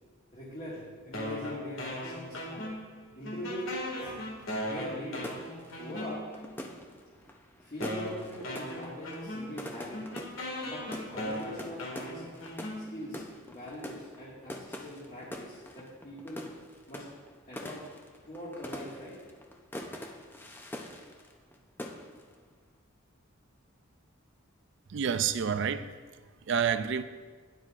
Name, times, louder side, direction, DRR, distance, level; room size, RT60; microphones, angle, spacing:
voice 1, 0.3-2.7 3.2-4.2 4.6-5.3 5.8-6.3 7.6-10.0 10.6-12.3 12.8-16.4 16.9-17.0 17.5-17.8 18.2-19.1, left 1 dB, 35° left, 1.8 m, -42 dB
sound 1, 1.1-3.0 3.2-6.5 7.2-7.3 7.8-13.2, left 1 dB, 75° left, 2.1 m, -38 dB
sound 2, 5.1-21.5 21.8-22.3, left 1 dB, 10° left, 0.6 m, -44 dB
voice 2, 24.9-25.9 26.5-27.0, right 7 dB, 60° right, 0.4 m, -28 dB
12.0 x 9.9 x 2.5 m
head